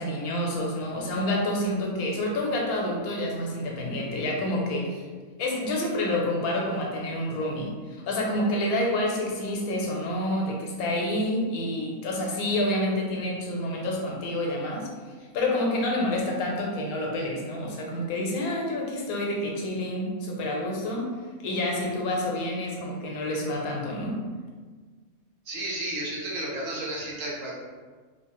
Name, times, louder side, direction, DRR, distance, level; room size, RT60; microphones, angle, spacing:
voice 1, 0.0-5.1 5.4-14.9 15.2-21.1 21.4-24.2, left 1 dB, 85° left, -1 dB, 1.1 m, -28 dB
voice 2, 25.4-27.5, right 1 dB, 70° right, -5 dB, 1.1 m, -32 dB
3.0 x 2.0 x 2.9 m, 1.5 s
omnidirectional pair, 1.5 m